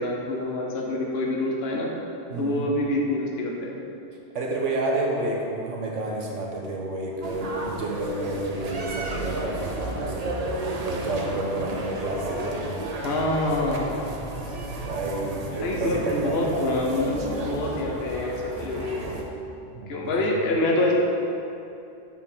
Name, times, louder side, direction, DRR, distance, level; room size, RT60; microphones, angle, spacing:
voice 1, 0.0-1.9 2.4-3.7 13.0-13.8 15.6-19.2 19.9-20.9, left 2 dB, 60° left, -1 dB, 1.1 m, -26 dB
voice 2, 2.3-2.7 4.3-12.8 14.8-16.6 19.7-20.4, right 2 dB, 90° right, -1 dB, 1.3 m, -30 dB
sound 1, 7.2-19.2, right 2 dB, 40° right, 0.6 m, -33 dB
7.0 x 5.6 x 4.3 m, 2.8 s
omnidirectional pair, 1.2 m